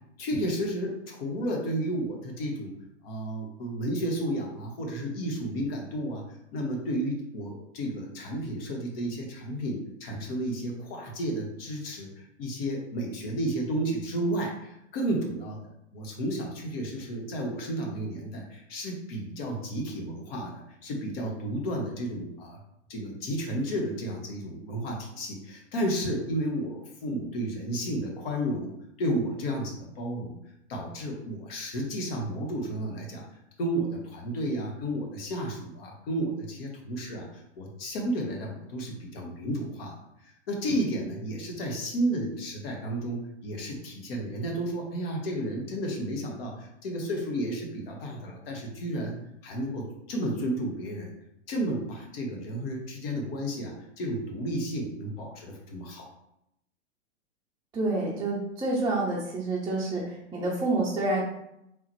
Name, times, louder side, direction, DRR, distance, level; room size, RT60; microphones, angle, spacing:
voice 1, 0.2-2.7 3.0-6.2 6.5-15.6 15.9-22.6 22.9-30.4 30.7-33.2 33.6-39.9 40.5-49.2 49.4-51.1 51.5-56.1, right 1 dB, 55° left, 0 dB, 1.2 m, -32 dB
voice 2, 57.7-61.2, right 2 dB, 10° right, -6 dB, 0.6 m, -28 dB
3.7 x 3.1 x 3.0 m, 0.81 s
hypercardioid pair, 110°, 34 cm